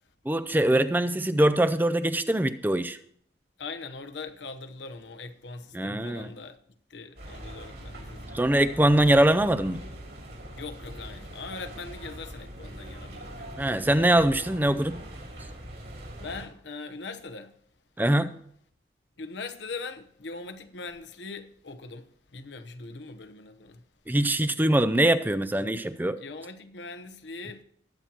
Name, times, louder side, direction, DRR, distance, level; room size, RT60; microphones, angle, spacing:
voice 1, 0.3-3.0 5.7-6.3 8.3-9.8 13.6-15.0 18.0-18.3 24.1-26.2, right 1 dB, 10° right, 0.5 m, -23 dB
voice 2, 3.6-6.6 6.9-8.5 10.5-14.1 16.2-17.5 19.2-23.8 26.2-27.6, left 3 dB, 85° left, 1.0 m, -41 dB
sound 1, 7.2-16.4, right 1 dB, 75° right, 5.4 m, -42 dB
20.5 x 8.8 x 3.0 m
head